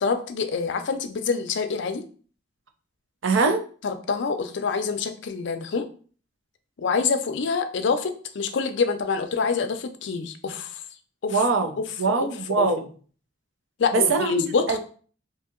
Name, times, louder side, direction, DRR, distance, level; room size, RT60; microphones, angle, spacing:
voice 1, 0.0-2.0 3.8-5.9 6.8-10.8 11.2-11.4 12.2-12.3 12.6-12.7 13.8-14.8, left 5 dB, 60° left, 8 dB, 0.4 m, -26 dB
voice 2, 3.2-3.6 11.3-12.9 13.9-14.8, right 4 dB, 75° right, 5 dB, 0.5 m, -23 dB
2.8 x 2.7 x 3.6 m, 0.42 s
head